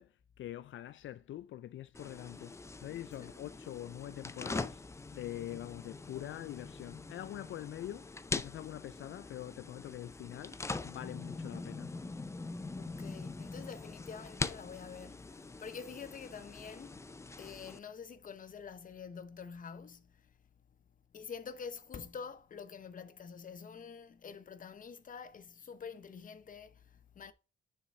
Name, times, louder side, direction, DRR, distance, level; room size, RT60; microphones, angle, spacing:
voice 1, 0.0-4.8 5.1-11.9, left 13 dB, 75° left, 0.4 m, -44 dB
sound 1, 1.9-17.8, left 3 dB, 15° left, 0.4 m, -43 dB
voice 2, 12.7-17.0 17.4-20.3 21.1-27.3, left 6 dB, 40° left, 0.9 m, -47 dB
6.7 x 5.1 x 4.7 m
wide cardioid pair, 160°, 20 cm